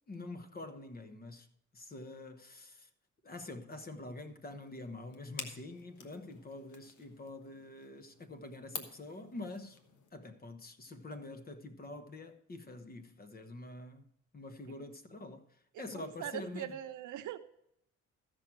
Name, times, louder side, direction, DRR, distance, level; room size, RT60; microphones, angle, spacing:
voice 1, 0.1-1.5 1.7-2.9 3.2-9.8 10.1-16.8, left 2 dB, 30° left, 1.1 m, -46 dB
sound 1, 4.6-10.1, left 5 dB, 75° left, 1.3 m, -49 dB
voice 2, 15.7-17.4, right 11 dB, 80° right, 0.8 m, -42 dB
14.5 x 6.2 x 4.6 m
cardioid pair, 90°, 30 cm